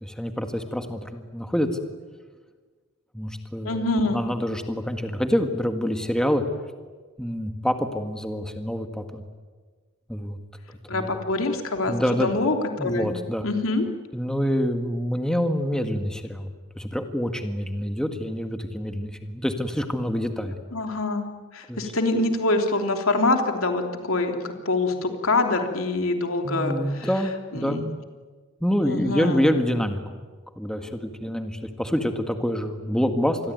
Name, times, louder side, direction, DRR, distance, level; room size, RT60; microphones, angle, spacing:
voice 1, 0.0-1.7 3.1-6.4 7.2-9.2 10.1-10.4 10.9-11.1 11.9-12.3 12.8-13.4 14.1-20.6 21.7-21.8 26.4-27.8 28.6-30.2 30.6-33.5, equal, 5° left, 6 dB, 1.8 m, -26 dB
voice 2, 3.6-4.2 10.9-13.1 13.4-13.8 20.7-21.2 21.5-27.1 27.5-27.9 28.8-29.4, left 2 dB, 70° left, 4 dB, 3.2 m, -25 dB
27.5 x 21.5 x 9.3 m, 1.4 s
head